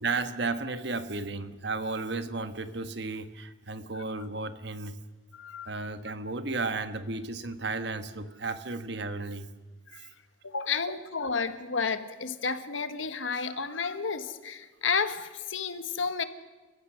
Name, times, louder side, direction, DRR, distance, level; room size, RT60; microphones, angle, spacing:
voice 1, 0.0-5.0 5.6-9.5, right 3 dB, 60° right, 10 dB, 1.3 m, -33 dB
voice 2, 5.3-5.7 9.9-10.1 10.4-16.2, left 5 dB, 85° left, 10 dB, 1.5 m, -31 dB
29.5 x 15.5 x 6.3 m, 1.4 s
head